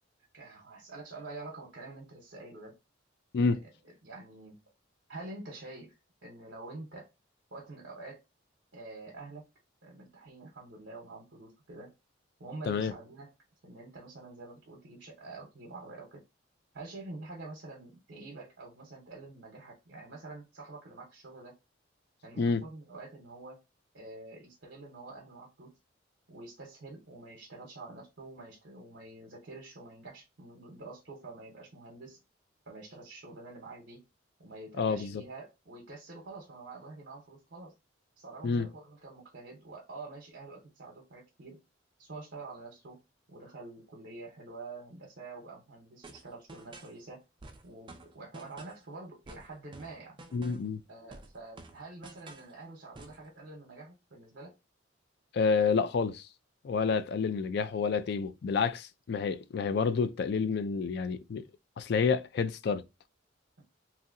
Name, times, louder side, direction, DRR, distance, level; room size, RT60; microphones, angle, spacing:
voice 1, 0.3-2.8 3.4-3.7 4.0-4.6 5.1-6.0 6.2-7.1 7.5-8.2 8.7-9.5 9.8-11.9 12.4-13.3 13.6-16.2 16.7-21.6 22.2-23.6 23.9-25.7 26.3-32.2 32.7-34.0 34.4-37.7 38.2-41.6 42.0-43.0 43.3-47.2 47.6-50.2 50.9-54.5, right 2 dB, 60° right, 0.8 m, -47 dB
voice 2, 34.8-35.2 38.4-38.7 50.3-50.8 55.3-56.3 56.6-61.4 61.8-62.8, left 5 dB, 55° left, 0.3 m, -29 dB
sound 1, 46.0-47.0 47.4-48.9 49.3-50.8 51.1-52.5 52.9-53.2, right 2 dB, 25° right, 0.4 m, -50 dB
3.0 x 2.7 x 2.5 m
head